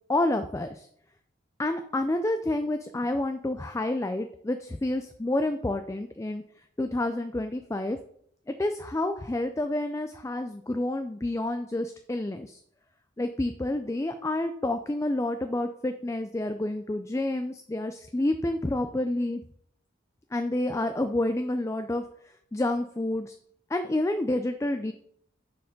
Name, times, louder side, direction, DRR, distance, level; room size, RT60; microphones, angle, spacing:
voice 1, 0.1-0.9 1.6-6.4 6.8-8.0 8.6-12.6 13.2-19.4 20.3-22.0 22.5-23.4 23.7-24.9, left 1 dB, 15° left, 7 dB, 0.3 m, -29 dB
6.7 x 6.5 x 5.2 m, 0.66 s
head